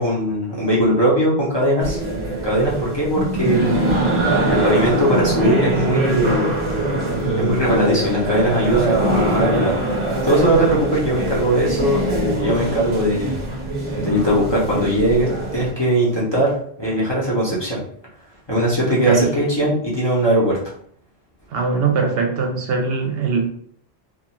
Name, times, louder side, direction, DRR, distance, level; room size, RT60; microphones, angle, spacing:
voice 1, 0.0-2.0 2.4-3.9 4.5-6.5 7.4-9.8 10.2-13.3 14.0-17.8 18.5-20.5, right 1 dB, 30° left, -6 dB, 0.6 m, -19 dB
sound 1, 1.8-15.7, right 1 dB, 35° right, 0.6 m, -23 dB
voice 2, 18.9-19.3 21.5-23.5, right 5 dB, 70° right, 3 dB, 0.7 m, -21 dB
2.3 x 2.3 x 2.9 m, 0.62 s
omnidirectional pair, 1.1 m